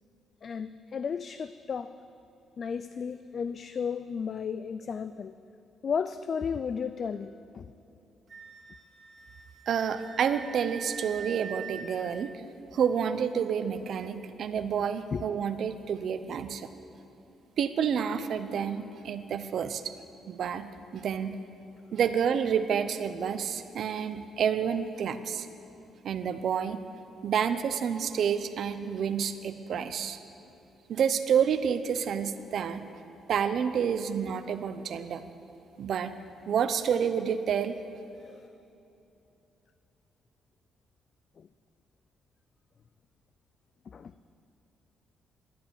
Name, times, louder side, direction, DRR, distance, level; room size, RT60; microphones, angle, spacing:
voice 1, 0.4-1.9 2.6-5.3 5.8-7.7 15.1-15.2 38.2-38.5 41.4-41.5 43.9-44.1, left 6 dB, 50° left, 13 dB, 0.3 m, -34 dB
Wind instrument woodwind instrument, 8.3-11.8, right 6 dB, 45° right, 1.9 m, -44 dB
voice 2, 9.7-12.3 12.7-16.7 17.6-19.9 20.3-20.7 20.9-21.3 21.9-25.5 26.0-26.8 27.2-30.2 30.9-32.9 33.3-35.2 35.8-36.2 36.5-37.8, right 7 dB, 65° right, 10 dB, 0.7 m, -29 dB
12.0 x 8.6 x 8.6 m, 3.0 s
cardioid pair, 90°, 0 cm